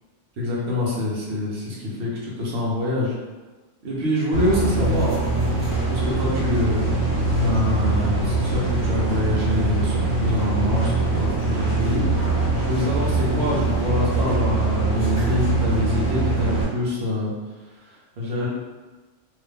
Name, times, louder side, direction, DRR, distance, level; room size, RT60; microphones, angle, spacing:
voice 1, 0.4-3.2 3.8-5.2 5.9-12.0 12.6-17.3 17.8-18.5, left 2 dB, 60° right, -5 dB, 1.1 m, -25 dB
sound 1, 4.3-16.6, right 3 dB, 15° left, 1.0 m, -23 dB
2.9 x 2.2 x 3.4 m, 1.3 s
omnidirectional pair, 1.3 m